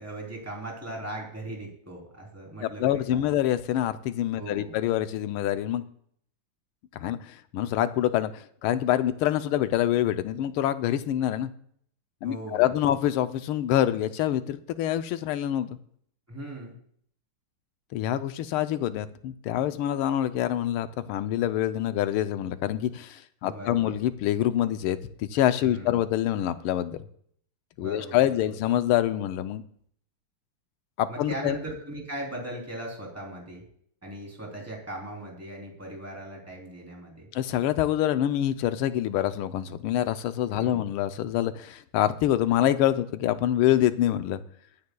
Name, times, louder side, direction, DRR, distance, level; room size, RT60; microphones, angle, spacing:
voice 1, 0.0-3.4 4.4-4.8 12.2-12.7 16.3-16.8 23.4-23.9 25.7-26.0 27.8-28.5 31.1-33.6 34.0-37.3 40.5-40.9, right 1 dB, 5° right, -1 dB, 3.2 m, -38 dB
voice 2, 2.6-5.8 6.9-11.5 12.2-15.8 17.9-27.0 27.8-29.6 31.0-31.6 37.3-44.4, left 12 dB, 85° left, 11 dB, 1.5 m, -26 dB
21.5 x 9.5 x 2.3 m, 0.63 s
omnidirectional pair, 2.3 m